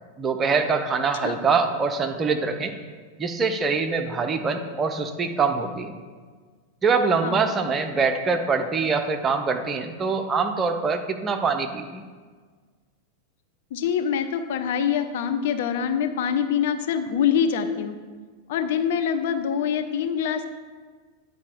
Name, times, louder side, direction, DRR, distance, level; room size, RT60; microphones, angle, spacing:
voice 1, 0.2-2.7 3.2-5.9 6.8-12.0, right 4 dB, 20° right, 6 dB, 0.7 m, -24 dB
voice 2, 7.2-7.5 13.7-18.0 18.5-20.4, left 8 dB, 55° left, 7 dB, 0.5 m, -25 dB
9.5 x 4.4 x 5.0 m, 1.5 s
figure-of-eight pair, 90°, 0 cm